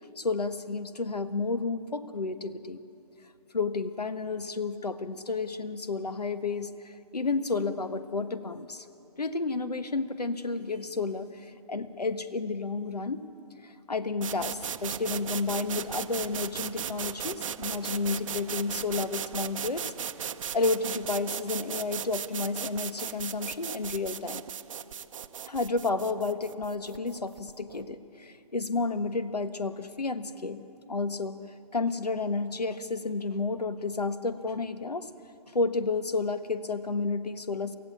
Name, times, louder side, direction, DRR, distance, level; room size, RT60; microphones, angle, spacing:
voice 1, 0.2-2.8 3.5-8.9 9.2-13.2 13.6-19.8 20.5-24.4 25.5-31.4 31.7-35.1 35.5-37.8, left 3 dB, 90° left, 12 dB, 1.3 m, -31 dB
sound 1, 14.2-27.9, right 8 dB, 55° right, 0.8 m, -37 dB
24.0 x 15.5 x 8.3 m, 2.7 s
figure-of-eight pair, 140°, 20 cm